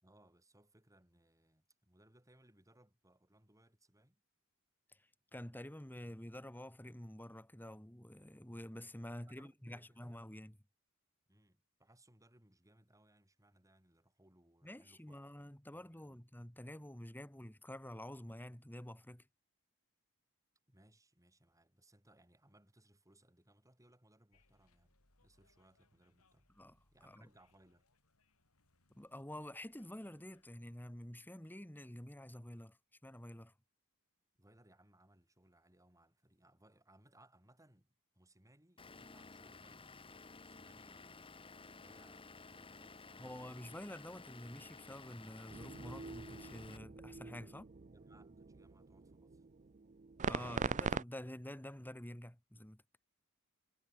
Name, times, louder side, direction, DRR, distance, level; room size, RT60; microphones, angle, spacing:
voice 1, 0.0-4.2 9.1-10.1 11.3-16.2 20.7-25.0 25.2-26.5 26.9-27.9 34.4-37.9 38.1-43.7 47.9-49.4, right 1 dB, 15° right, 6.5 m, -68 dB
voice 2, 5.3-10.6 14.6-19.3 26.6-26.8 27.0-27.3 28.9-32.8 33.0-33.5 43.2-47.7 50.2-52.8, left 1 dB, 10° left, 1.7 m, -49 dB
sound 1, 24.3-30.6, left 2 dB, 80° left, 6.6 m, -76 dB
Vehicle / Engine, 38.8-46.8, left 4 dB, 25° left, 1.3 m, -55 dB
sound 2, 45.5-51.0, right 5 dB, 35° right, 0.6 m, -42 dB
head